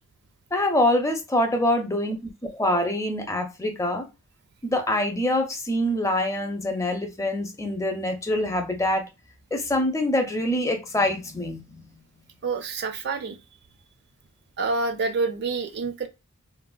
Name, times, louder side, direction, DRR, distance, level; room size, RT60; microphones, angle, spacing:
voice 1, 0.5-4.1 4.6-9.1 9.5-12.0, left 1 dB, 15° left, 0.5 m, -25 dB
voice 2, 12.4-13.4 14.6-16.1, right 4 dB, 50° right, 0.4 m, -27 dB
3.3 x 2.2 x 2.2 m
head